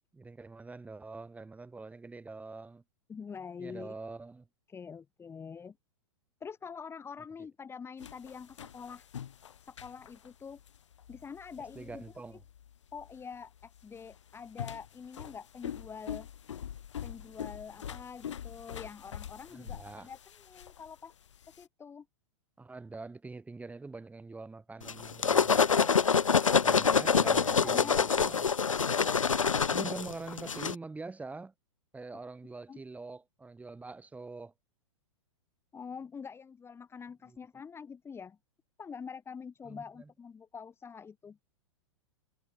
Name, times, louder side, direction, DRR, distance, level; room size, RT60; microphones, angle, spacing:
voice 1, 0.1-2.8 3.6-4.5 11.8-12.4 19.5-20.1 22.6-25.9 26.6-28.5 29.7-31.5 31.9-34.5 37.2-37.4 39.6-40.1, right 3 dB, 10° right, 7.0 m, -44 dB
voice 2, 3.1-3.9 4.7-5.8 6.4-9.1 9.7-10.6 11.1-12.0 12.9-16.3 17.0-21.1 21.6-22.1 26.5-28.1 32.7-32.8 35.7-38.4 38.8-41.4, left 6 dB, 15° left, 3.5 m, -45 dB
sound 1, 8.0-21.7, left 9 dB, 65° left, 6.1 m, -45 dB
sound 2, 24.9-30.8, left 6 dB, 90° left, 0.4 m, -26 dB
figure-of-eight pair, 105°, 16 cm